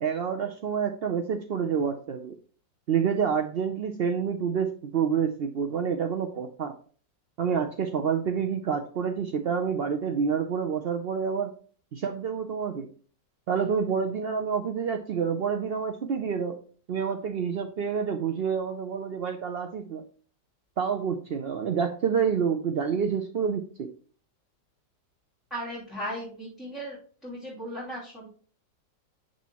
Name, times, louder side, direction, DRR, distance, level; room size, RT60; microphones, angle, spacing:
voice 1, 0.0-2.3 2.9-6.7 7.4-11.5 11.9-12.9 13.5-16.6 16.9-20.0 20.8-23.9, right 6 dB, 60° right, 5 dB, 0.6 m, -28 dB
voice 2, 25.5-28.3, equal, ahead, -8 dB, 2.9 m, -37 dB
8.9 x 6.9 x 3.0 m, 0.43 s
omnidirectional pair, 1.8 m